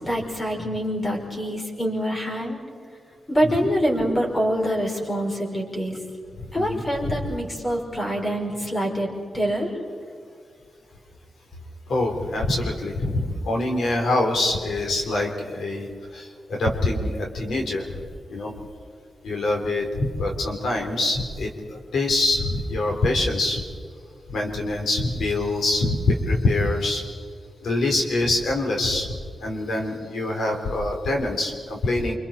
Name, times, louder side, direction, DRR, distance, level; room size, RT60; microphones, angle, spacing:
voice 1, 0.0-2.6 3.3-6.0 6.5-9.1 9.3-9.7, equal, 20° left, 0 dB, 4.8 m, -25 dB
voice 2, 6.6-7.3 11.9-18.0 18.3-18.5 19.2-23.6 24.3-27.2 27.6-29.1 29.4-32.1, left 2 dB, 85° left, 1 dB, 3.7 m, -25 dB
30.0 x 26.0 x 4.4 m, 2.1 s
wide cardioid pair, 150°, 0 cm